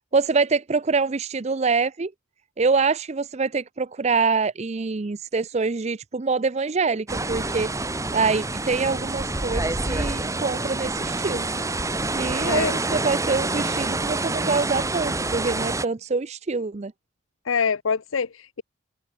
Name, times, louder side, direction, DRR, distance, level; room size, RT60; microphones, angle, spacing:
voice 1, 0.1-2.1 2.6-7.7 8.1-11.5 12.2-16.9, right 4 dB, 35° right, 0.5 m, -25 dB
sound 1, 7.1-15.8, right 2 dB, 15° right, 1.5 m, -27 dB
voice 2, 12.4-12.7 17.5-18.6, left 5 dB, 90° left, 0.7 m, -25 dB
open air
head